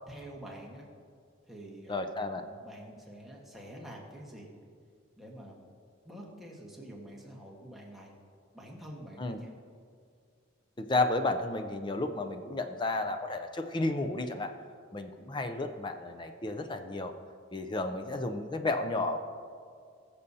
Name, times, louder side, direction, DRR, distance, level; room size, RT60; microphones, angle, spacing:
voice 1, 0.1-0.8 1.5-2.0 2.3-4.5 5.2-5.6 6.0-8.1 8.5-9.5, right 1 dB, ahead, -3 dB, 1.3 m, -47 dB
voice 2, 1.9-2.4 9.2-9.4 10.8-14.6 14.9-17.1 17.5-19.2, left 2 dB, 25° left, 7 dB, 0.5 m, -32 dB
20.0 x 6.8 x 2.7 m, 2.1 s
head